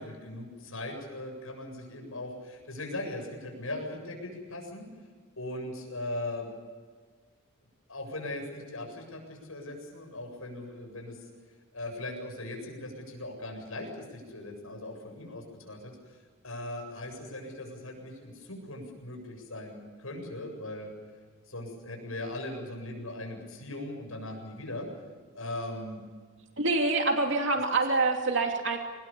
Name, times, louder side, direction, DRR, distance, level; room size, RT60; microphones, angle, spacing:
voice 1, 0.0-4.9 5.4-6.5 7.9-11.2 11.7-16.2 16.4-20.9 21.5-24.9 25.3-26.0, left 1 dB, 80° left, 2 dB, 7.8 m, -39 dB
voice 2, 26.6-28.8, right 3 dB, 60° right, 3 dB, 2.9 m, -26 dB
26.5 x 21.0 x 7.1 m, 1.5 s
head